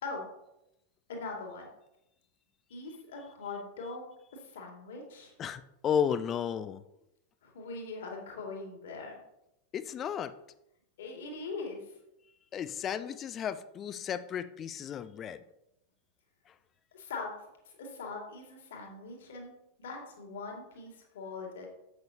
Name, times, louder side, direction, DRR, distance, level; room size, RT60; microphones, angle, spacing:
voice 1, 1.1-1.7 2.7-4.0 4.4-5.3 7.4-9.2 11.0-11.9 16.9-17.3 17.8-21.7, left 3 dB, 60° left, 1 dB, 2.3 m, -41 dB
voice 2, 5.4-6.8 9.7-10.3 12.5-15.4, left 8 dB, 30° left, 14 dB, 0.5 m, -33 dB
11.0 x 7.9 x 2.8 m, 0.86 s
figure-of-eight pair, 90°, 0 cm